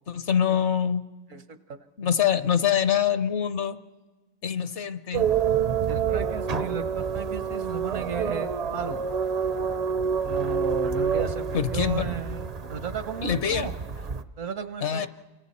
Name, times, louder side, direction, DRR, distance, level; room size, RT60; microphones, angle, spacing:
voice 1, 0.1-1.0 2.0-3.8 4.4-5.3 11.5-12.1 13.2-13.7 14.8-15.1, left 8 dB, 60° left, 13 dB, 1.1 m, -25 dB
voice 2, 1.3-1.8 2.7-2.8 5.9-9.0 10.2-11.4 11.7-13.7 14.4-15.1, right 6 dB, 70° right, 11 dB, 1.4 m, -34 dB
sound 1, 5.1-14.2, right 6 dB, 40° right, 0.6 m, -28 dB
29.0 x 25.0 x 4.2 m, 1.3 s
omnidirectional pair, 1.4 m